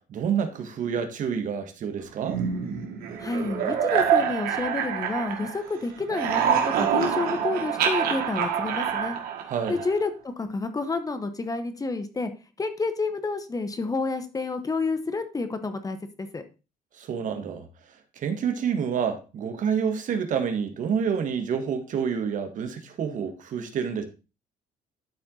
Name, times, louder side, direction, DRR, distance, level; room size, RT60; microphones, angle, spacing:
voice 1, 0.1-2.4 9.5-9.8 16.9-17.7 18.1-24.0, right 7 dB, 60° right, 1.6 m, -28 dB
sound 1, 2.2-5.7 6.0-10.0, right 8 dB, 80° right, 1.8 m, -26 dB
voice 2, 3.2-9.2 9.7-12.3 12.6-16.4, left 3 dB, 25° left, 1.1 m, -29 dB
12.0 x 4.4 x 3.9 m
cardioid pair, 105°, 15 cm